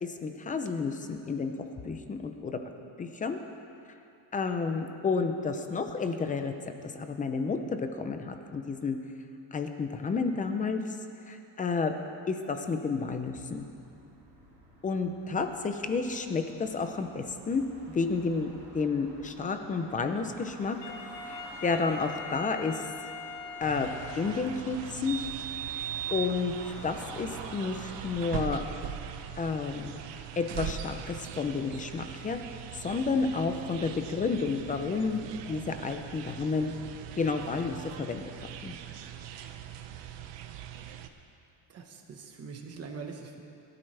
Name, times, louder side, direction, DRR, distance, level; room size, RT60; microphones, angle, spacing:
voice 1, 0.0-1.5 1.8-2.6 3.0-3.4 4.3-6.5 6.9-9.0 9.5-10.8 11.3-11.9 12.3-13.7 14.8-20.8 21.3-22.8 23.6-23.9 24.2-25.2 26.1-26.5 26.8-28.6 29.4-29.9 30.4-32.4 32.7-35.2 35.5-36.7 37.1-38.2 38.6-38.7, left 4 dB, 20° left, 7 dB, 0.5 m, -31 dB
sound 1, 13.6-32.8, right 1 dB, 15° right, 3.4 m, -51 dB
Wind instrument woodwind instrument, 20.8-24.7, left 4 dB, 65° left, 2.0 m, -42 dB
sound 2, 23.6-41.1, right 10 dB, 65° right, 0.9 m, -40 dB
voice 2, 41.7-43.4, right 5 dB, 30° right, 3 dB, 1.3 m, -43 dB
22.0 x 12.5 x 3.3 m, 2.6 s
cardioid pair, 180°, 46 cm